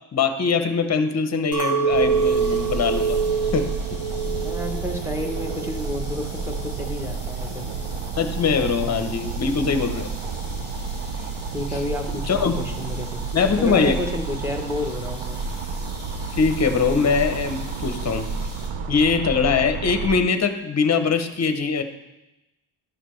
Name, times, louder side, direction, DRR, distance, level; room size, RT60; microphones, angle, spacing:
voice 1, 0.1-3.2 3.5-3.7 8.2-10.1 12.3-12.5 13.3-14.0 16.4-18.3 18.9-21.8, left 5 dB, 35° left, 8 dB, 0.7 m, -22 dB
Chink clink, 1.5-5.9 6.3-6.9, right 6 dB, 45° right, 1.8 m, -25 dB
sound 1, 1.9-18.7, left 1 dB, 10° left, 2.1 m, -43 dB
sound 2, 1.9-20.2, right 4 dB, 75° right, 0.7 m, -31 dB
voice 2, 4.2-7.8 11.5-13.2 13.6-15.4, left 1 dB, 5° right, 3 dB, 0.7 m, -30 dB
11.5 x 6.6 x 3.1 m, 0.97 s
wide cardioid pair, 130°, 50 cm